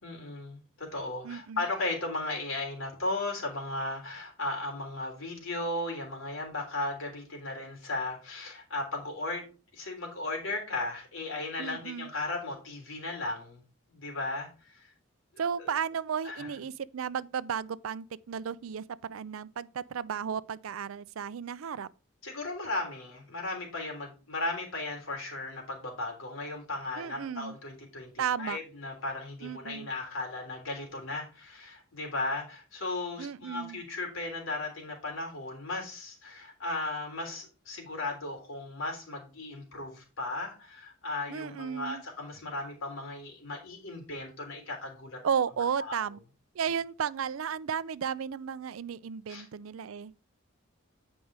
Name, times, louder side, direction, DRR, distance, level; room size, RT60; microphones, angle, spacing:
voice 1, 0.0-9.5 9.7-13.6 13.9-14.9 15.6-15.7 16.2-16.5 22.2-45.2 45.8-46.0 49.3-49.4, left 2 dB, 75° left, 3.5 m, -36 dB
voice 2, 1.2-1.6 11.6-12.1 15.4-21.9 27.0-27.5 28.2-28.6 29.4-29.9 33.2-33.8 41.3-42.0 45.2-46.2 46.5-50.1, right 7 dB, 85° right, 0.4 m, -34 dB
8.8 x 5.2 x 4.7 m
head